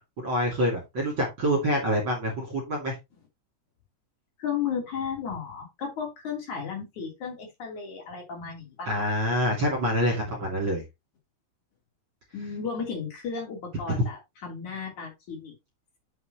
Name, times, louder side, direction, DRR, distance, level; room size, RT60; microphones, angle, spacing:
voice 1, 0.2-2.9 8.9-10.8 13.9-14.0, equal, 35° right, 0 dB, 2.9 m, -26 dB
voice 2, 4.4-9.0 12.3-15.5, left 6 dB, 50° left, 1 dB, 4.3 m, -34 dB
9.4 x 6.4 x 3.0 m, 0.22 s
omnidirectional pair, 4.6 m